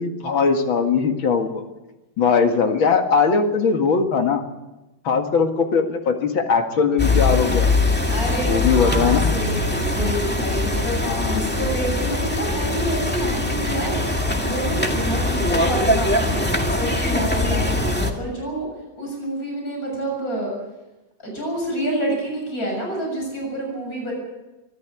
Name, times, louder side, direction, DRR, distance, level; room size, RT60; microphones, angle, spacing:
voice 1, 0.0-1.6 2.2-4.4 5.0-7.7 8.5-9.3 11.0-11.6, left 5 dB, 85° left, 5 dB, 2.7 m, -20 dB
sound 1, 7.0-18.1, left 2 dB, 5° left, 2.0 m, -22 dB
voice 2, 8.1-14.0 14.4-18.7 19.0-20.5 21.2-24.1, right 1 dB, 45° left, 0 dB, 7.8 m, -28 dB
24.0 x 14.0 x 8.4 m, 1.0 s
omnidirectional pair, 2.1 m